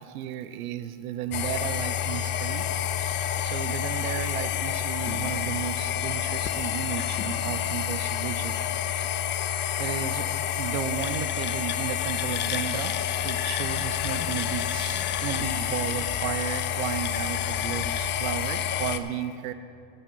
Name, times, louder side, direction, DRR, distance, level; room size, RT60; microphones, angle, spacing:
voice 1, 0.0-2.7 3.4-8.6 9.8-12.9 13.2-19.5, right 10 dB, 90° right, 12 dB, 0.8 m, -34 dB
sound 1, 1.3-19.0, left 9 dB, 30° left, 0.4 m, -28 dB
16.0 x 5.5 x 5.4 m, 2.4 s
supercardioid pair, 120°, 41 cm